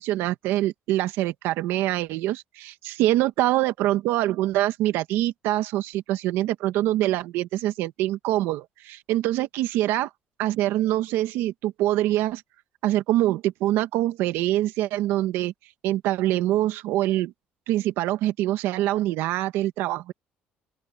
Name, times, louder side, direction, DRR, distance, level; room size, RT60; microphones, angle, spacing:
voice 1, 0.0-10.1 10.4-12.4 12.8-15.5 15.8-17.3 17.7-20.1, right 14 dB, 85° right, 1.3 m, -24 dB
open air
cardioid pair, 135°, 4 cm